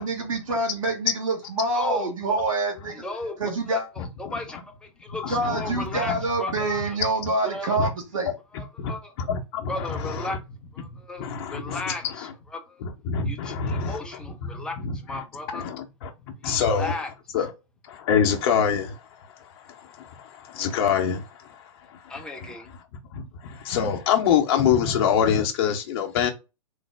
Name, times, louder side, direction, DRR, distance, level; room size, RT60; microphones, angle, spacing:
voice 1, 0.0-3.0 3.4-3.9 5.3-8.3, right 2 dB, 75° right, 1.4 m, -26 dB
voice 2, 1.7-2.1 2.9-3.4 3.7-7.0 7.4-7.8 8.5-9.1 9.7-10.4 10.7-12.8 13.3-14.7 15.0-15.6 16.4-17.1 22.1-22.7, left 2 dB, 5° left, 0.6 m, -35 dB
voice 3, 4.0-4.3 5.1-6.1 7.8-7.9 8.8-8.9 9.2-10.4 10.8-10.9 11.2-12.3 12.8-14.0 14.4-14.9 15.5-17.0 17.3-17.5 17.8-22.1 23.1-26.3, left 7 dB, 45° left, 0.7 m, -26 dB
3.2 x 2.0 x 3.2 m
hypercardioid pair, 120°, 17 cm